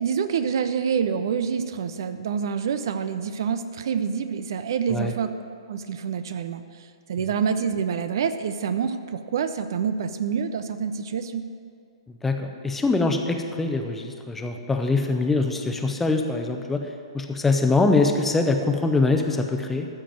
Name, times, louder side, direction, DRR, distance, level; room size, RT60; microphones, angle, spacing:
voice 1, 0.0-5.3 5.7-11.4, right 7 dB, 50° right, 10 dB, 0.5 m, -27 dB
voice 2, 12.1-16.9 17.1-19.9, left 3 dB, 10° left, 4 dB, 0.8 m, -23 dB
14.0 x 5.1 x 7.6 m, 2.4 s
figure-of-eight pair, 120°, 3 cm